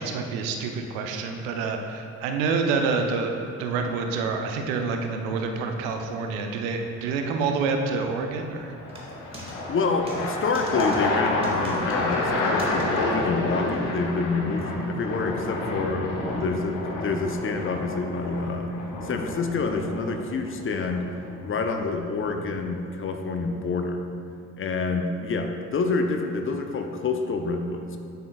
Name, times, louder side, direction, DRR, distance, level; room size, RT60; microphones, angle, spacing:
voice 1, 0.0-8.7, right 4 dB, 65° right, 4 dB, 0.7 m, -27 dB
sound 1, 3.9-4.3 8.1-22.7, left 2 dB, 65° left, 1.2 m, -30 dB
sound 2, 8.9-9.5 10.1-10.2 10.5-11.0 11.4-12.1 12.6-12.8 13.7-13.8, equal, 15° right, 1.8 m, -41 dB
voice 2, 9.3-18.7 19.0-21.1 21.4-24.0 24.6-28.0, left 4 dB, 30° left, 5 dB, 0.7 m, -27 dB
9.3 x 8.0 x 2.3 m, 2.4 s
figure-of-eight pair, 45°, 43 cm